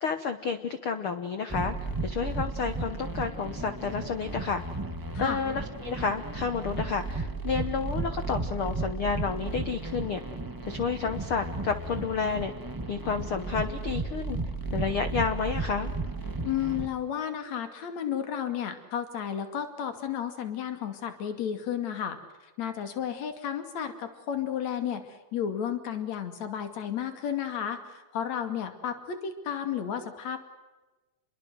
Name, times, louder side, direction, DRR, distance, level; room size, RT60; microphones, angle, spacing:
voice 1, 0.0-1.7 2.0-4.6 5.2-10.2 10.7-12.5 12.9-14.4 14.7-15.9, left 5 dB, 70° left, 9 dB, 1.2 m, -30 dB
sound 1, 1.5-16.9, right 3 dB, 10° right, 0.9 m, -34 dB
voice 2, 16.4-22.2 22.6-30.4, left 9 dB, 50° left, 8 dB, 3.5 m, -32 dB
28.5 x 22.5 x 7.9 m, 1.1 s
omnidirectional pair, 4.3 m